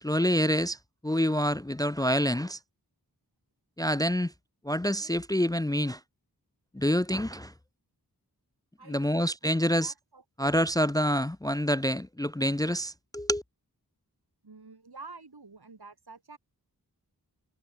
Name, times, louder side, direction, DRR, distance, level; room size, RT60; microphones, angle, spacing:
voice 1, 0.0-0.8 1.0-2.6 3.8-4.3 4.6-6.0 6.7-7.5 8.9-9.9 10.4-13.4, equal, 10° left, 0.6 m, -27 dB
voice 2, 8.8-10.2 14.4-16.4, right 3 dB, 75° right, 5.5 m, -49 dB
wide cardioid pair, 45°, 39 cm